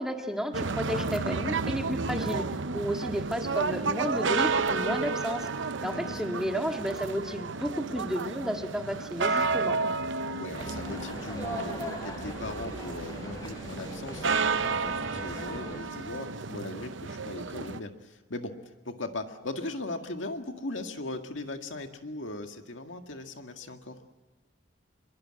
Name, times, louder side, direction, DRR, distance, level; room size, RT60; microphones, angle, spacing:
voice 1, 0.0-2.4 2.7-5.5 5.8-9.8, equal, 5° right, 3 dB, 1.9 m, -32 dB
sound 1, 0.5-17.8, right 4 dB, 70° right, 0.8 m, -31 dB
voice 2, 5.8-6.4 10.3-18.5 18.8-24.0, left 2 dB, 75° left, 5 dB, 2.0 m, -39 dB
sound 2, 10.5-15.8, equal, 20° left, 5.8 m, -40 dB
25.0 x 22.5 x 7.8 m, 1.2 s
head